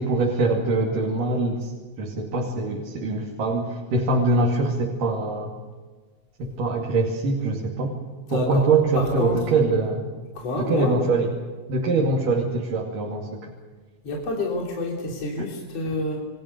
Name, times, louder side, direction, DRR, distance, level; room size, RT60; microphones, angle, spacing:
voice 1, 0.0-1.7 2.0-5.5 6.4-8.0 8.3-10.1 10.6-11.3 11.7-13.5, right 3 dB, 85° right, -1 dB, 4.2 m, -23 dB
voice 2, 8.3-8.6 9.0-9.4 10.4-11.0 14.0-16.2, left 2 dB, 50° left, -1 dB, 4.2 m, -28 dB
29.0 x 22.5 x 6.7 m, 1.4 s
omnidirectional pair, 3.7 m